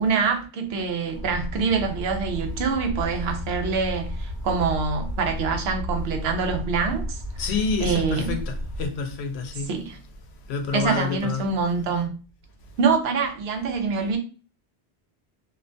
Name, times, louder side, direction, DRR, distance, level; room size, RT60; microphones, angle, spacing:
voice 1, 0.0-7.2 7.8-8.3 9.7-10.0 10.7-12.1 12.8-14.2, right 5 dB, 80° right, 0.8 m, -25 dB
sound 1, 1.1-8.9, equal, 55° left, 0.8 m, -32 dB
voice 2, 7.4-9.8 10.5-11.5, left 5 dB, 85° left, 0.8 m, -28 dB
2.4 x 2.2 x 2.5 m
omnidirectional pair, 1.1 m